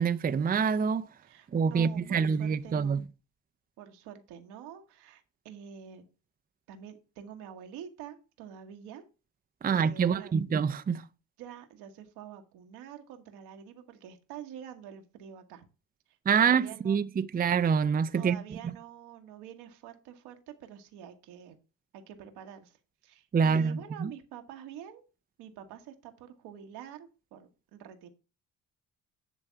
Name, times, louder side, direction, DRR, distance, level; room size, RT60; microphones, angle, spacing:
voice 1, 0.0-1.1 1.5-3.0 9.6-11.0 16.3-18.4 18.6-18.7 23.3-24.1, right 6 dB, 25° right, 0.5 m, -26 dB
voice 2, 1.2-3.0 3.8-6.0 6.7-9.0 9.7-10.4 11.4-15.6 16.4-17.0 18.1-21.6 21.9-22.8 23.0-25.0 25.4-28.1, right 9 dB, 75° right, 1.3 m, -47 dB
9.7 x 3.5 x 5.6 m
hypercardioid pair, 60°, 39 cm